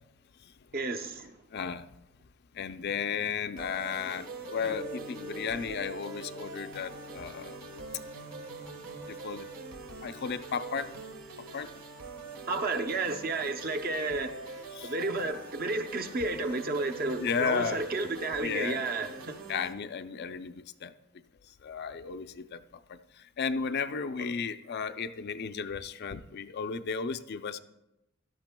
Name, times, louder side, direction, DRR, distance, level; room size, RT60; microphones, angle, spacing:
voice 1, 0.7-1.4 12.5-14.4 14.8-19.4 24.2-24.3, right 3 dB, 45° right, 0.8 m, -32 dB
voice 2, 1.5-1.9 2.5-7.6 9.1-9.5 10.0-10.9 11.5-11.7 14.7-14.9 17.2-17.8 18.4-18.9 19.5-20.9 21.6-22.6 22.9-27.6, left 6 dB, 50° left, 0.4 m, -34 dB
sound 1, 3.6-19.7, right 3 dB, 90° right, 1.4 m, -44 dB
Gong, 4.6-15.2, equal, 15° right, 0.7 m, -50 dB
16.5 x 12.5 x 2.2 m
head